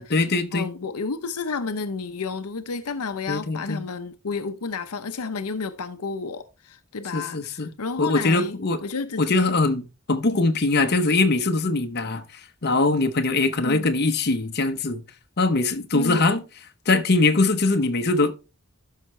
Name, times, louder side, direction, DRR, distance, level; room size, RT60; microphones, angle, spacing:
voice 1, 0.0-0.7 3.3-3.8 7.1-7.7 8.0-8.8 9.2-12.2 12.6-15.0 15.4-16.4 16.9-18.3, left 3 dB, 45° left, 0.9 m, -22 dB
voice 2, 0.5-9.6 13.6-13.9 15.9-16.2, left 4 dB, 80° left, 0.7 m, -31 dB
12.5 x 5.7 x 3.2 m
head